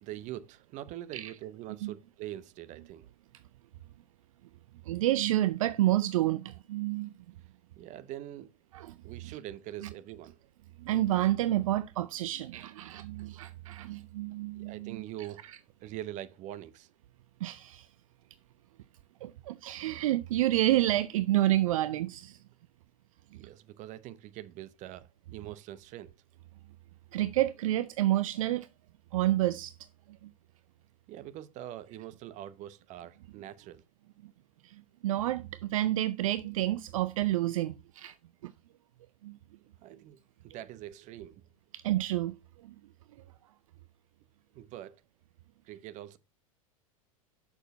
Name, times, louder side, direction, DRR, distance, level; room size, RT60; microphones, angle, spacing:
voice 1, 0.0-3.1 7.8-8.5 9.0-10.4 14.5-15.5 15.8-16.9 23.3-26.1 31.1-33.8 39.8-40.2 40.4-41.4 44.5-45.0 45.6-46.2, right 13 dB, 40° right, 0.9 m, -43 dB
voice 2, 4.8-7.1 8.7-9.0 9.2-9.4 9.8-9.9 10.8-15.0 15.5-15.6 17.4-17.9 19.2-22.4 23.3-23.4 27.1-28.7 29.1-29.7 30.1-30.3 34.6-38.2 38.4-38.5 39.2-39.4 39.9-40.0 41.7-42.3 42.6-42.7, right 14 dB, 65° right, 0.5 m, -29 dB
7.2 x 6.6 x 4.2 m
figure-of-eight pair, 90°, 19 cm